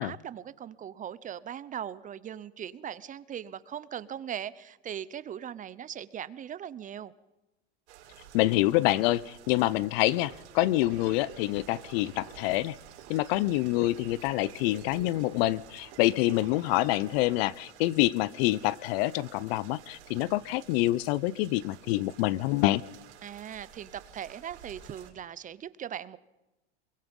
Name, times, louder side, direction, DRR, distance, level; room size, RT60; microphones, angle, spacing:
voice 1, 0.0-7.1 23.2-26.2, right 9 dB, 25° right, 18 dB, 0.7 m, -39 dB
sound 1, 7.9-25.1, right 10 dB, 80° right, 6.0 m, -53 dB
voice 2, 8.3-12.8 13.1-22.8, left 17 dB, 60° left, 22 dB, 0.7 m, -26 dB
sound 2, 10.0-17.4, right 11 dB, 60° right, 3.8 m, -51 dB
23.5 x 23.0 x 5.4 m, 1.0 s
supercardioid pair, 125°, 34 cm